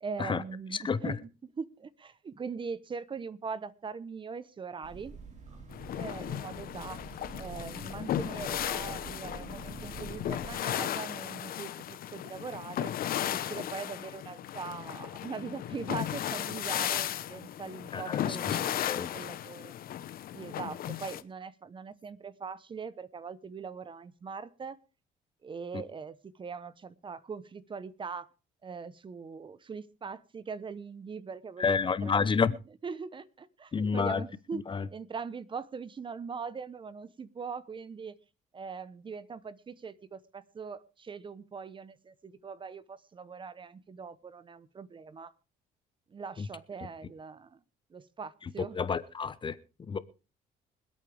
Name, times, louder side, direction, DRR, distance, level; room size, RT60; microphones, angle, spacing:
voice 1, 0.0-5.1 5.9-7.0 7.4-19.7 20.3-24.8 25.4-28.3 28.6-32.6 32.8-38.2 38.5-45.3 46.1-47.6 47.9-48.8, right 5 dB, 30° right, 17 dB, 0.9 m, -41 dB
voice 2, 0.7-1.2 17.9-19.1 31.6-32.5 33.7-34.2 34.5-34.9 46.4-46.5 48.7-49.6 49.9-50.0, left 5 dB, 30° left, 15 dB, 0.9 m, -29 dB
sound 1, 4.8-10.5, right 4 dB, 45° right, 4.4 m, -47 dB
sound 2, 5.7-21.2, left 11 dB, 60° left, 1.0 m, -35 dB
25.5 x 8.7 x 3.4 m, 0.32 s
cardioid pair, 110°, 17 cm